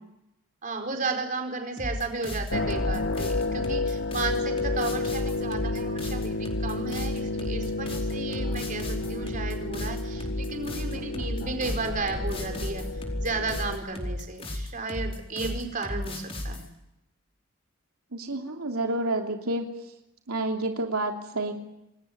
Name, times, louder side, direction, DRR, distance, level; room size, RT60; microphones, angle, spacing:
voice 1, 0.6-12.8 13.2-16.7, right 3 dB, 40° right, 4 dB, 4.6 m, -34 dB
sound 1, 1.8-16.7, left 1 dB, 25° left, 4.6 m, -34 dB
sound 2, 2.5-13.8, left 2 dB, 60° left, 1.8 m, -31 dB
voice 2, 18.1-19.7 20.3-21.5, right 2 dB, 90° right, 2 dB, 3.1 m, -29 dB
28.0 x 21.5 x 9.4 m, 0.89 s
head